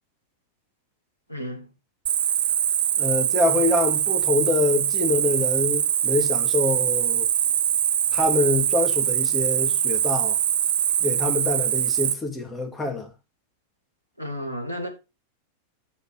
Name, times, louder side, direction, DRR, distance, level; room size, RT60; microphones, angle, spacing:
voice 1, 1.3-1.7 14.2-14.9, equal, 90° left, 2.0 m, -32 dB
Cricket, 2.1-12.1, right 10 dB, 60° right, 0.4 m, -23 dB
voice 2, 3.0-7.3 8.1-10.4 11.0-13.1, left 2 dB, 15° left, 2.3 m, -25 dB
7.1 x 6.3 x 4.7 m
figure-of-eight pair, 90°, 0 cm